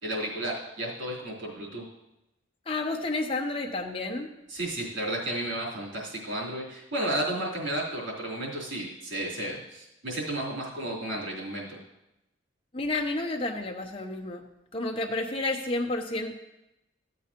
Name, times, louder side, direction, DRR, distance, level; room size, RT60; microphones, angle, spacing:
voice 1, 0.0-1.9 4.5-11.8, right 1 dB, 70° right, -5 dB, 3.4 m, -33 dB
voice 2, 2.7-4.3 12.7-14.5 14.7-16.3, left 2 dB, 25° left, 1 dB, 0.7 m, -30 dB
14.5 x 8.3 x 2.9 m, 0.91 s
head